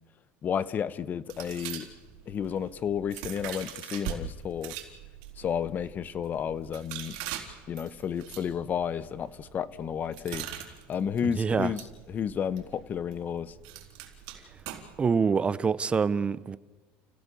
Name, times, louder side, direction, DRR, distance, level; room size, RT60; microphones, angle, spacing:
voice 1, 0.4-1.9 2.3-4.8 5.4-7.2 7.7-10.5 10.9-13.5, left 8 dB, 35° left, 1.0 m, -32 dB
sound 1, 1.3-4.2 4.6-15.1, right 11 dB, 75° right, 4.1 m, -43 dB
voice 2, 11.4-11.7 15.0-16.6, right 5 dB, 20° right, 0.8 m, -25 dB
30.0 x 16.5 x 7.1 m
supercardioid pair, 130°, 5 cm